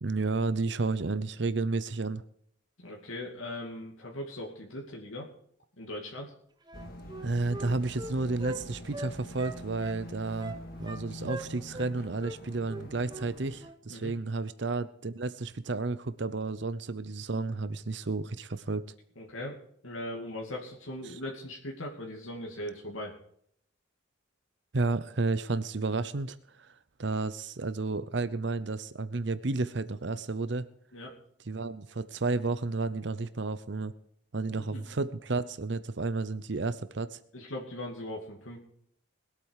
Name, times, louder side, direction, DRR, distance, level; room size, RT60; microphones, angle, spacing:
voice 1, 0.0-2.2 7.2-18.8 21.0-21.2 24.7-26.7 27.0-30.7 31.5-33.9 34.3-37.2, right 3 dB, 60° right, 13 dB, 0.7 m, -32 dB
voice 2, 2.8-5.3 5.8-6.3 13.9-14.1 19.2-19.6 19.8-23.1 30.9-31.1 34.6-34.8 37.3-38.6, left 1 dB, 85° left, -1 dB, 2.5 m, -39 dB
sound 1, 6.7-13.7, left 1 dB, 45° left, 2.1 m, -45 dB
Wind instrument woodwind instrument, 6.7-8.6 8.9-10.0 10.4-11.0 11.3-11.9 12.2-12.4 12.7-13.3 13.6-13.8, right 2 dB, 20° right, 1.0 m, -41 dB
21.0 x 8.5 x 4.8 m, 0.68 s
head